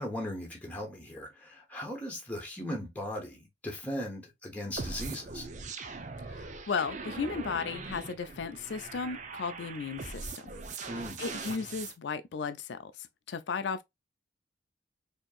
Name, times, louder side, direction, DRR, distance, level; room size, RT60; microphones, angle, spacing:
voice 1, 0.0-5.5 10.9-11.2, left 1 dB, 10° left, 1.2 m, -38 dB
sound 1, 4.8-11.9, right 4 dB, 40° right, 0.6 m, -41 dB
voice 2, 6.3-10.4 10.8-13.8, left 5 dB, 65° left, 0.4 m, -35 dB
4.3 x 2.8 x 2.4 m
head